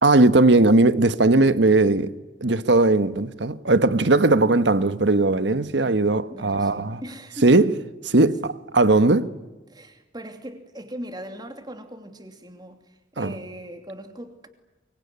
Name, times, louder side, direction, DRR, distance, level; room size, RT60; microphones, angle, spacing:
voice 1, 0.0-2.1 2.4-7.0 7.4-7.7 8.0-9.3 13.2-13.3, right 2 dB, 70° right, 1.3 m, -18 dB
voice 2, 6.3-7.5 8.4-8.5 9.7-14.5, right 1 dB, 20° right, 2.8 m, -40 dB
24.5 x 23.5 x 9.7 m
head